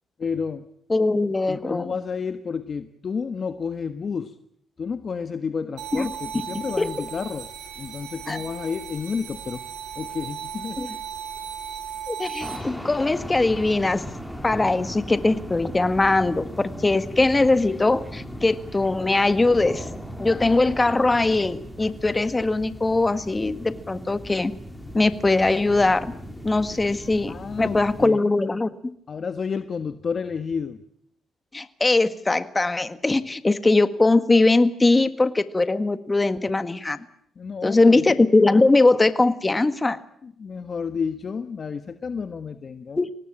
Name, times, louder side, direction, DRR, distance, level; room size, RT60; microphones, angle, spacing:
voice 1, 0.2-0.7 1.5-4.3 4.8-7.5 7.8-9.6 10.0-11.0 27.3-28.2 29.1-30.8 37.4-38.0 40.2-43.0, left 5 dB, 45° left, 10 dB, 1.3 m, -30 dB
voice 2, 0.9-1.9 5.9-6.1 6.8-6.9 8.3-8.4 10.8-11.0 12.1-14.0 14.4-19.9 20.2-24.5 24.9-26.1 26.4-28.8 31.5-37.0 37.6-40.0 43.0-43.1, left 2 dB, 20° left, 12 dB, 1.7 m, -21 dB
sound 1, 5.8-12.6, right 8 dB, 75° right, 4.8 m, -36 dB
sound 2, 12.4-28.1, equal, 5° left, 4.1 m, -38 dB
24.5 x 19.0 x 8.9 m, 0.68 s
cardioid pair, 90°, 0 cm